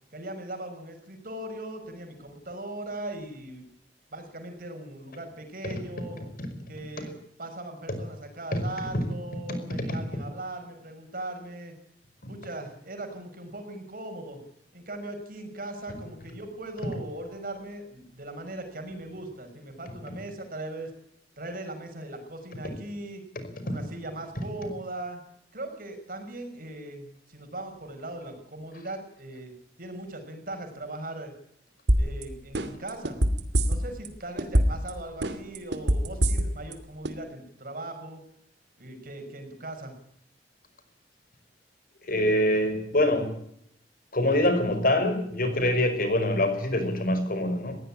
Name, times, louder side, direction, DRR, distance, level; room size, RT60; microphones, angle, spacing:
voice 1, 0.1-3.7 4.1-6.2 6.7-7.1 7.4-11.7 12.3-14.4 14.7-20.9 21.4-23.2 23.6-25.2 25.5-29.5 29.8-31.3 32.0-33.2 33.6-38.2 38.8-39.9, right 1 dB, 55° right, 5 dB, 5.9 m, -39 dB
sound 1, 31.9-32.2 32.5-34.1 34.4-34.9 35.2-36.7 37.0-37.1, equal, 75° right, 2.7 m, -22 dB
voice 2, 42.0-43.3 44.1-47.8, left 1 dB, 55° left, 9 dB, 5.3 m, -24 dB
20.5 x 17.0 x 8.7 m, 0.72 s
head